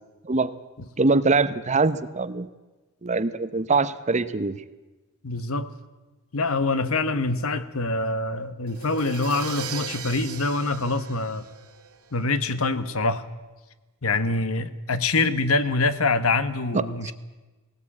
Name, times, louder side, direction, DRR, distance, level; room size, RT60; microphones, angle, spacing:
voice 1, 0.2-0.6 1.0-2.5 3.0-4.6 17.0-17.1, right 3 dB, 30° right, 13 dB, 0.8 m, -23 dB
voice 2, 5.2-5.7 6.3-11.5 12.1-13.3 14.0-17.1, left 3 dB, 70° left, 13 dB, 1.2 m, -25 dB
Crash cymbal, 8.7-12.4, right 6 dB, 85° right, 3.9 m, -38 dB
19.0 x 17.5 x 8.6 m, 1.2 s
head